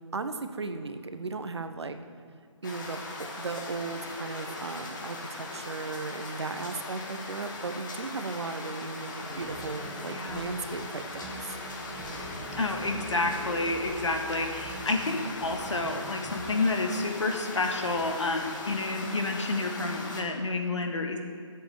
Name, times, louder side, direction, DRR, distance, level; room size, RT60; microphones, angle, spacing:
voice 1, 0.1-2.0 2.6-3.0 3.4-11.6, right 4 dB, 55° right, 8 dB, 1.0 m, -36 dB
sound 1, 2.6-20.2, left 2 dB, 35° left, 1.7 m, -39 dB
sound 2, 9.2-16.7, right 1 dB, 5° right, 1.1 m, -44 dB
voice 2, 10.0-10.4 12.6-21.2, left 2 dB, 65° left, 3 dB, 1.6 m, -29 dB
11.0 x 7.9 x 6.9 m, 2.2 s
figure-of-eight pair, 150°, 17 cm